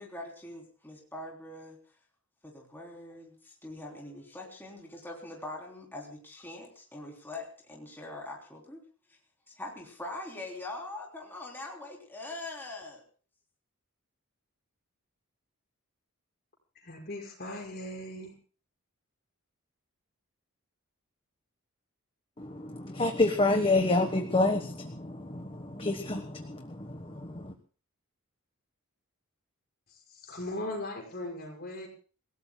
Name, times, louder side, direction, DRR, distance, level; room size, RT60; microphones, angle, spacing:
voice 1, 0.0-1.8 2.4-8.8 9.5-13.0, left 2 dB, 10° left, -1 dB, 3.5 m, -43 dB
voice 2, 16.8-18.3 29.9-31.9, left 1 dB, 45° left, 1 dB, 6.0 m, -39 dB
voice 3, 22.4-27.5, left 2 dB, 25° left, 5 dB, 1.3 m, -28 dB
28.0 x 17.5 x 2.3 m, 0.38 s
head